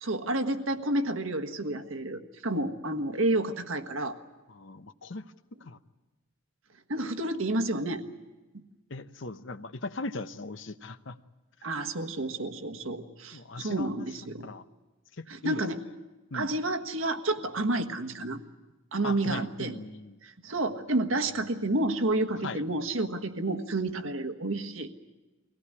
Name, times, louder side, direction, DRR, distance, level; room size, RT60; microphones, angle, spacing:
voice 1, 0.0-4.2 6.9-8.0 11.6-14.5 15.3-15.8 16.3-18.4 18.9-19.7 20.2-24.9, right 2 dB, 70° right, 6 dB, 1.5 m, -30 dB
voice 2, 4.5-5.3 5.6-5.8 8.9-11.2 13.3-14.1 14.4-14.6 15.2-15.6 16.3-16.6 19.0-20.2 22.4-22.6, left 3 dB, 60° left, 11 dB, 0.8 m, -39 dB
23.5 x 17.5 x 9.8 m, 1.2 s
head